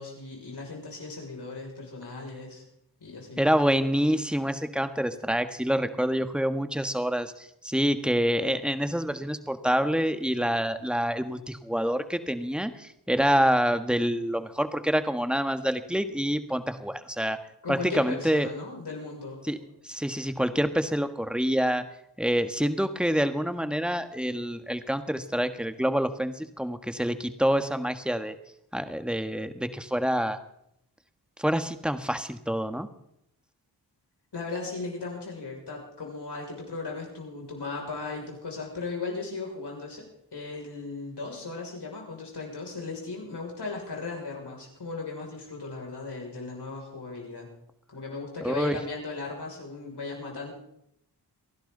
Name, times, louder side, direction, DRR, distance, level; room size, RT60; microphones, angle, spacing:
voice 1, 0.0-2.6 3.0-3.5 17.6-19.4 34.3-47.5 47.9-50.5, left 3 dB, 70° left, -1 dB, 6.3 m, -37 dB
voice 2, 3.4-17.4 17.7-18.5 19.4-19.6 19.8-21.8 22.2-28.4 28.7-30.4 31.4-32.9 48.4-48.8, equal, ahead, 9 dB, 1.5 m, -27 dB
28.0 x 11.5 x 4.0 m, 0.77 s
cardioid pair, 45°, 42 cm